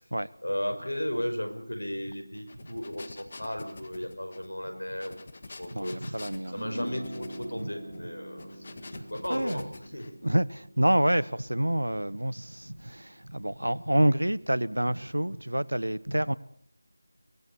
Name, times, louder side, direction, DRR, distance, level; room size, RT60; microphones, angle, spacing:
voice 1, 0.4-5.1 5.5-6.2 6.5-8.7 9.1-9.6 9.9-10.2, equal, 75° left, 5.3 m, -35 dB
sound 1, 2.3-10.1, left 3 dB, 35° left, 1.7 m, -47 dB
voice 2, 5.7-6.7 7.6-7.7 8.9-9.7 10.2-16.3, right 1 dB, 75° right, 0.9 m, -28 dB
sound 2, 6.4-13.0, equal, 5° right, 7.0 m, -42 dB
23.5 x 18.0 x 6.9 m
figure-of-eight pair, 165°, 0 cm